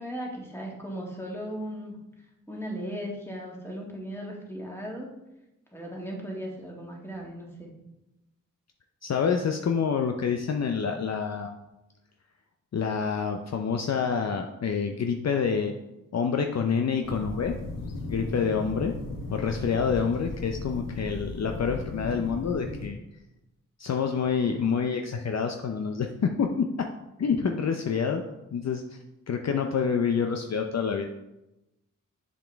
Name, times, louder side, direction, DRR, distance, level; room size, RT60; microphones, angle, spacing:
voice 1, 0.0-2.0 2.5-5.1 5.7-7.7, equal, 5° left, -2 dB, 2.1 m, -37 dB
voice 2, 9.0-11.5 12.7-15.7 16.1-17.5 18.1-18.9 19.3-23.0 23.8-26.9 27.2-28.2 28.5-29.0 29.3-31.1, left 6 dB, 55° left, 4 dB, 0.6 m, -27 dB
sound 1, 17.0-22.9, left 2 dB, 80° left, 1.0 m, -36 dB
7.1 x 5.1 x 3.5 m, 0.94 s
cardioid pair, 50°, 33 cm